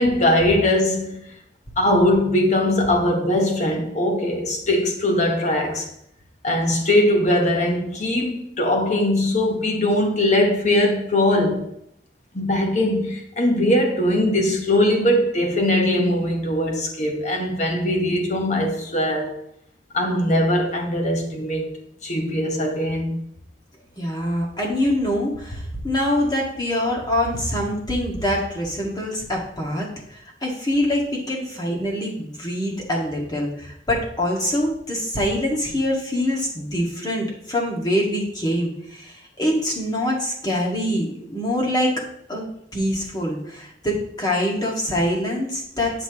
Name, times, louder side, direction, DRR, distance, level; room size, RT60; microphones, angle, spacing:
voice 1, 0.0-1.3 1.8-5.9 6.4-11.7 12.3-19.3 19.9-21.7 22.0-23.2, left 1 dB, 40° left, 1.3 m, -21 dB
voice 2, 24.0-41.9 42.3-42.5 42.7-46.0, left 1 dB, 25° left, 1.9 m, -24 dB
10.0 x 5.9 x 3.0 m
head